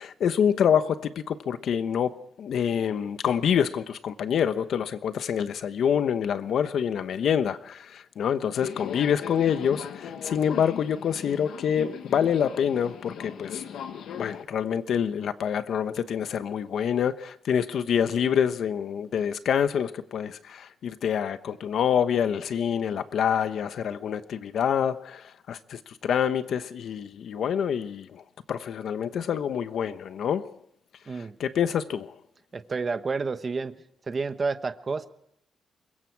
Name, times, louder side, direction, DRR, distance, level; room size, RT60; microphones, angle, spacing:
voice 1, 0.0-13.6 14.1-30.6 31.1-32.1, left 8 dB, 60° left, 1.0 m, -26 dB
Subway metro underground, 8.5-14.4, left 8 dB, 75° left, 1.6 m, -39 dB
voice 2, 32.5-33.7 34.1-35.1, right 4 dB, 25° right, 1.0 m, -30 dB
25.0 x 22.0 x 4.7 m
wide cardioid pair, 175°, 0 cm